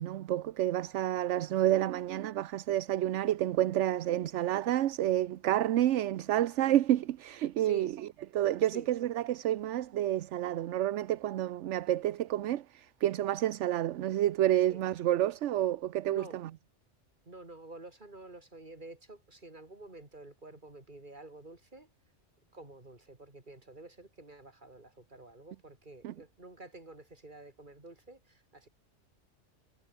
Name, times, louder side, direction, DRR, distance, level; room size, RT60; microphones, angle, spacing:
voice 1, 0.0-7.9 8.3-16.5 26.0-26.1, right 13 dB, 75° right, 0.9 m, -29 dB
voice 2, 7.6-7.9 8.7-8.9 14.7-14.8 16.1-16.4 17.3-21.9 22.5-28.7, right 2 dB, 40° right, 3.8 m, -49 dB
omnidirectional pair, 1.3 m